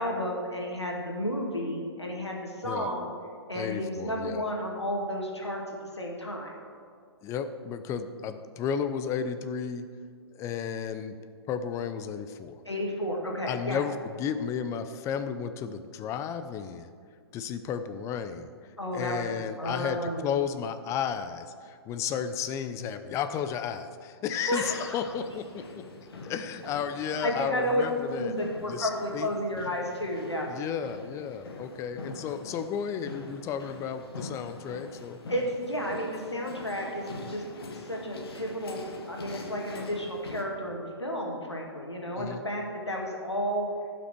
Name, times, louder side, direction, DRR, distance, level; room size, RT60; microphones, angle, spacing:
voice 1, 0.0-3.1 3.5-5.6 5.9-6.5 12.7-13.8 18.8-20.3 24.5-25.0 27.2-27.8 28.1-30.5 35.3-37.4 37.7-38.8 39.1-43.7, equal, 90° left, -1 dB, 2.2 m, -32 dB
voice 2, 3.5-4.4 7.2-9.9 10.3-11.2 11.5-12.6 13.5-16.9 17.3-18.5 18.9-25.8 26.2-28.4 28.7-29.3 30.5-35.2 42.2-42.4, left 7 dB, 20° left, 10 dB, 0.6 m, -33 dB
sound 1, 24.6-40.4, left 2 dB, 65° left, 1.4 m, -44 dB
16.0 x 6.0 x 4.5 m, 2.1 s
figure-of-eight pair, 115°, 14 cm